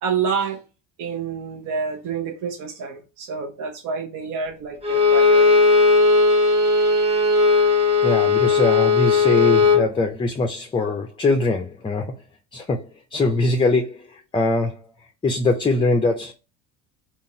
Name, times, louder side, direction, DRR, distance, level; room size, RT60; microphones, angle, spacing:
voice 1, 0.0-0.6 1.0-5.6, right 5 dB, 60° right, 0.8 m, -28 dB
Bowed string instrument, 4.8-9.9, left 3 dB, 15° right, 1.2 m, -17 dB
voice 2, 8.0-12.2 12.5-14.8 15.2-16.3, left 3 dB, 15° left, 0.5 m, -22 dB
3.8 x 2.5 x 2.6 m
supercardioid pair, 100°, 35 cm